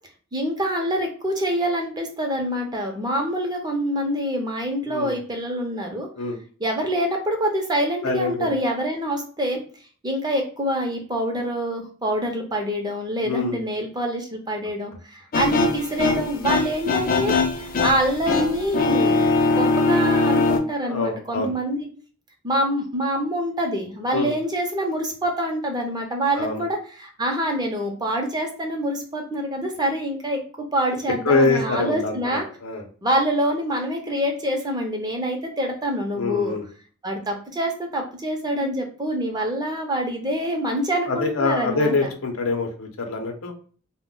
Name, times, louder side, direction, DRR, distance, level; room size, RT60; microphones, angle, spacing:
voice 1, 0.3-6.1 6.6-9.6 10.0-21.9 22.4-32.4 33.0-36.6 37.0-42.1, equal, 20° right, 2 dB, 0.6 m, -26 dB
voice 2, 8.0-8.5 13.2-13.6 20.8-21.5 24.1-24.3 26.4-26.6 31.2-32.8 36.2-36.6 41.1-43.5, left 3 dB, 85° left, 3 dB, 0.7 m, -24 dB
sound 1, 15.3-20.6, left 3 dB, 45° left, 0.4 m, -21 dB
2.2 x 2.1 x 3.7 m, 0.41 s
head